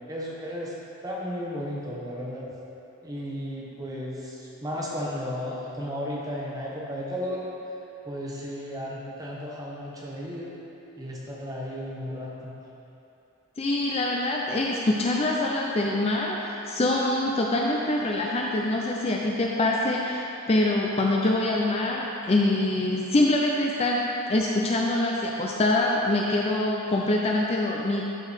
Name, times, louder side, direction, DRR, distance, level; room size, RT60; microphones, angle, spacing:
voice 1, 0.1-0.7 1.0-2.5 3.0-7.5 8.0-10.5 11.0-12.6, equal, 15° right, -4 dB, 0.9 m, -34 dB
voice 2, 13.6-28.1, left 2 dB, 25° left, -1 dB, 0.4 m, -25 dB
11.5 x 4.6 x 3.5 m, 3.0 s
head